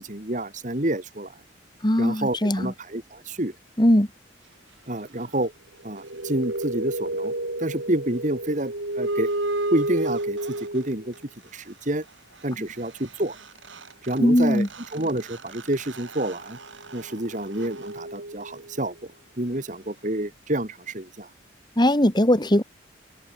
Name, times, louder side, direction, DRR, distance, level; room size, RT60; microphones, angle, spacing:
voice 1, 0.0-1.3 2.0-3.5 4.9-5.5 5.8-7.3 7.6-9.3 9.7-11.1 11.5-12.0 12.4-13.4 14.0-14.7 14.9-16.6 16.9-19.0 19.4-21.3, right 1 dB, 40° right, 2.3 m, -28 dB
voice 2, 1.8-2.7 3.8-4.1 14.2-14.7 21.8-22.6, equal, 20° left, 2.1 m, -19 dB
sound 1, 5.8-11.2 13.1-13.2 13.3-18.8, right 1 dB, 75° right, 5.3 m, -32 dB
head